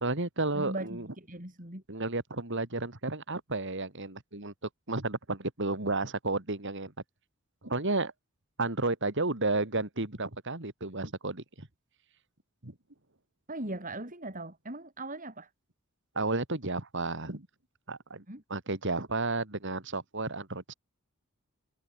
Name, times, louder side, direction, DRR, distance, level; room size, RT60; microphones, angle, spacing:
voice 1, 0.0-1.1 1.9-4.5 4.9-6.9 7.6-8.1 8.6-11.7 12.6-12.7 16.1-17.5 17.9-18.2 18.5-20.7, right 2 dB, 55° right, 3.1 m, -32 dB
voice 2, 0.5-1.8 13.5-15.5 18.3-18.4, right 2 dB, 40° right, 7.2 m, -39 dB
head